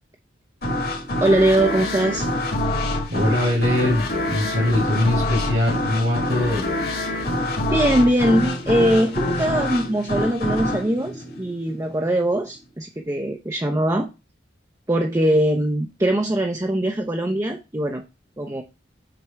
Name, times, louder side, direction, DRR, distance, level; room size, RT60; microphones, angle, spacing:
sound 1, 0.6-12.1, left 1 dB, 55° left, 1.9 m, -26 dB
voice 1, 1.2-2.3 7.1-7.2 7.7-14.1 14.9-18.0 18.4-18.6, right 1 dB, 15° right, 3 dB, 0.6 m, -21 dB
voice 2, 3.1-6.7, left 1 dB, 80° right, -4 dB, 3.1 m, -22 dB
7.5 x 3.4 x 5.7 m, 0.27 s
head